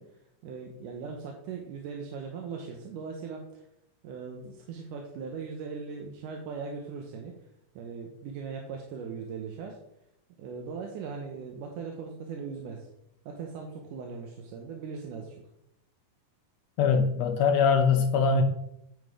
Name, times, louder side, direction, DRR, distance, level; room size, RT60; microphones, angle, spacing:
voice 1, 0.0-3.7 4.0-7.5 7.8-9.8 10.4-12.9 13.3-15.4, right 5 dB, 80° right, 1 dB, 2.4 m, -39 dB
voice 2, 16.8-18.4, left 5 dB, 75° left, 4 dB, 1.6 m, -22 dB
9.6 x 4.2 x 4.8 m, 0.78 s
omnidirectional pair, 3.6 m